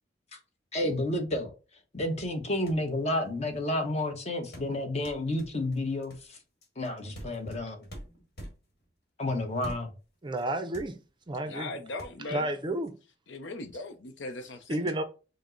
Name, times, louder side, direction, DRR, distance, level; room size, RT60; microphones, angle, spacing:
voice 1, 0.7-1.5 1.9-6.1 6.8-7.9 9.2-9.9, left 1 dB, 35° left, 0.9 m, -30 dB
sound 1, 2.4-2.5 2.7-3.0 4.5-8.9 9.6-10.1 10.4-10.5 10.7-11.3 12.0-12.1, right 1 dB, 55° left, 1.6 m, -45 dB
voice 2, 10.2-11.0 11.3-11.7 12.3-13.0 14.7-15.0, right 1 dB, 25° right, 0.5 m, -31 dB
voice 3, 11.5-12.5 13.3-14.9, left 2 dB, 75° left, 0.6 m, -39 dB
5.1 x 2.1 x 3.8 m
head